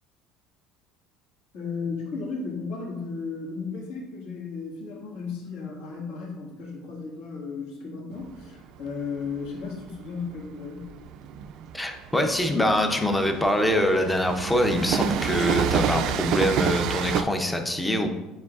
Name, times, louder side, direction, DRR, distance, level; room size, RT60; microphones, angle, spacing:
voice 1, 1.5-10.9, left 4 dB, 75° left, -4 dB, 1.7 m, -35 dB
Train, 8.1-17.2, right 9 dB, 50° right, 0.3 m, -29 dB
voice 2, 11.7-18.1, left 1 dB, 5° left, 5 dB, 0.5 m, -24 dB
8.7 x 4.6 x 2.4 m, 1.1 s
cardioid pair, 170°, 0 cm